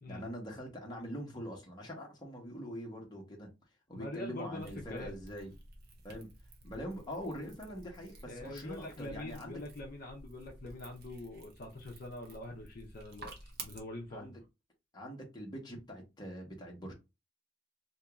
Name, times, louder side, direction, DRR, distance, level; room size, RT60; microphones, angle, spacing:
voice 1, 0.1-3.5 3.9-5.5 6.0-6.3 6.6-9.6 14.1-14.4 14.9-16.9, equal, 20° left, 1.2 m, -43 dB
voice 2, 3.9-5.2 8.2-14.4, left 2 dB, 50° left, 0.7 m, -44 dB
sound 1, 4.6-13.8, right 2 dB, 55° right, 1.0 m, -52 dB
2.9 x 2.7 x 3.5 m
head